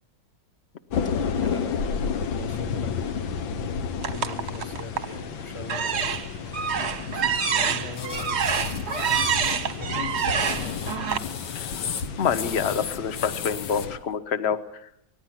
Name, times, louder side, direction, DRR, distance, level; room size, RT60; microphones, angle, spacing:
sound 1, 0.9-14.0, left 6 dB, 85° left, 1.9 m, -32 dB
voice 1, 1.2-3.0 4.1-6.2 7.1-8.4 9.1-11.1, left 3 dB, 25° left, 9 dB, 0.7 m, -40 dB
sound 2, 4.0-5.2 5.6-11.2, right 7 dB, 45° right, 1.1 m, -27 dB
sound 3, 7.9-9.6 10.2-13.9, left 7 dB, 65° left, 1.7 m, -35 dB
voice 2, 12.2-14.6, left 7 dB, 40° left, 12 dB, 1.1 m, -26 dB
24.5 x 19.0 x 6.0 m, 0.72 s
omnidirectional pair, 2.1 m